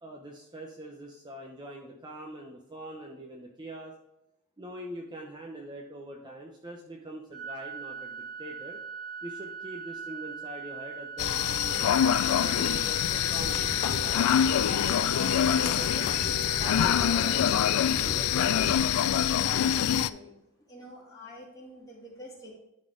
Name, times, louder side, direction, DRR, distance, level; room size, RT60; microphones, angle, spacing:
voice 1, 0.0-3.9 4.6-8.8 9.2-11.9 12.3-16.1 16.6-17.5 18.0-18.5, right 1 dB, 20° right, 0 dB, 0.8 m, -43 dB
Organ, 7.3-18.4, right 6 dB, 85° right, 2.6 m, -41 dB
sound 1, 11.2-20.1, left 9 dB, 85° left, 0.4 m, -25 dB
sound 2, 13.3-18.7, left 2 dB, 45° left, 0.8 m, -40 dB
voice 2, 19.4-20.4 20.7-22.6, equal, 15° left, -4 dB, 2.5 m, -46 dB
11.5 x 4.1 x 3.8 m, 0.88 s
head